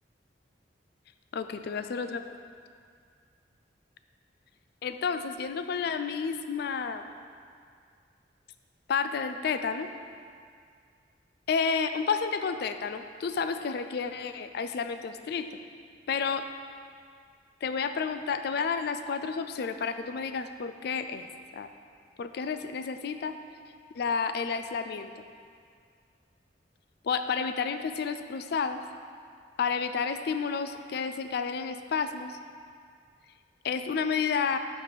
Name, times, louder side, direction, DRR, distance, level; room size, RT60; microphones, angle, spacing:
voice 1, 1.3-2.2 4.8-7.1 8.9-9.9 11.5-15.5 16.1-16.5 17.6-21.3 21.5-21.7 22.2-23.3 23.9-25.1 27.0-28.8 29.6-32.4 33.6-34.6, left 5 dB, 60° left, 9 dB, 0.3 m, -30 dB
5.2 x 4.9 x 5.7 m, 2.2 s
head